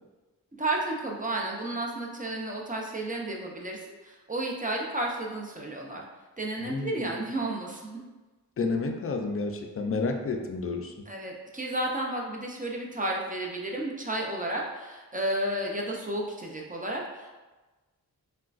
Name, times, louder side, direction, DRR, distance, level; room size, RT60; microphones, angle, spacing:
voice 1, 0.5-6.0 6.4-8.0 11.1-17.3, right 1 dB, 20° right, -1 dB, 0.5 m, -32 dB
voice 2, 6.6-7.1 8.6-11.1, left 3 dB, 35° left, 4 dB, 0.4 m, -30 dB
3.6 x 2.2 x 2.4 m, 1.2 s
cardioid pair, 45°, 38 cm